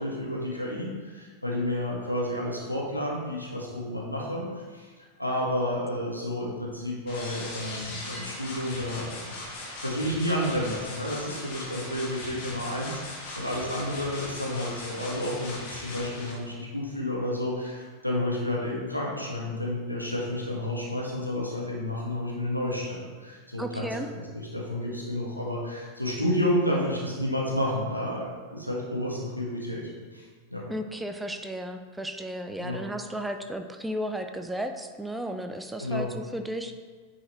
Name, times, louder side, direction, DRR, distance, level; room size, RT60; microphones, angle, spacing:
voice 1, 0.0-4.9 5.2-9.1 9.6-23.9 24.1-29.8 30.1-30.6 32.6-32.8 35.8-36.1, left 1 dB, 90° left, -4 dB, 1.6 m, -31 dB
sound 1, 7.1-16.3, left 2 dB, 45° left, 2.1 m, -39 dB
voice 2, 23.6-24.1 30.7-36.7, right 1 dB, 5° right, 6 dB, 0.4 m, -34 dB
9.5 x 4.8 x 3.1 m, 1.5 s
figure-of-eight pair, 90°, 0 cm